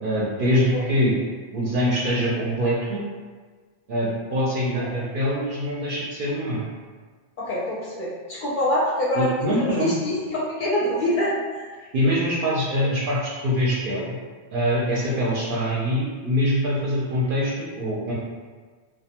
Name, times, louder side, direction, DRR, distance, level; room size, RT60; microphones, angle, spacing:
voice 1, 0.0-1.1 1.5-3.0 3.9-6.7 9.1-9.9 11.9-14.2 14.5-18.1, equal, 55° right, -6 dB, 0.6 m, -24 dB
voice 2, 7.4-11.7, left 1 dB, 55° left, -7 dB, 0.6 m, -25 dB
2.4 x 2.2 x 2.8 m, 1.5 s
omnidirectional pair, 1.2 m